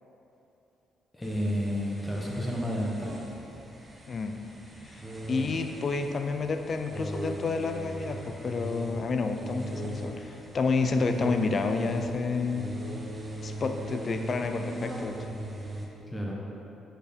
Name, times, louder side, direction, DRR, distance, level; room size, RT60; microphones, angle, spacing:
voice 1, 1.1-3.1 16.1-16.4, equal, 15° left, -3 dB, 1.1 m, -30 dB
sound 1, 1.2-15.9, right 1 dB, 15° right, 1.2 m, -39 dB
voice 2, 4.1-4.4 4.9-5.0 5.3-12.7 13.4-15.3, left 4 dB, 45° left, 6 dB, 0.6 m, -29 dB
8.2 x 4.5 x 5.2 m, 3.0 s
cardioid pair, 90°, 0 cm